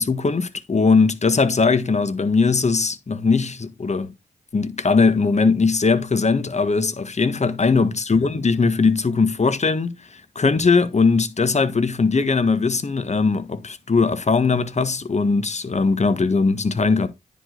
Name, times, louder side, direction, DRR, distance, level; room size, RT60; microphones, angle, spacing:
voice 1, 0.0-4.1 4.5-9.9 10.3-17.1, left 4 dB, 40° left, 1.4 m, -20 dB
9.8 x 5.2 x 4.0 m
supercardioid pair, 40°, 18 cm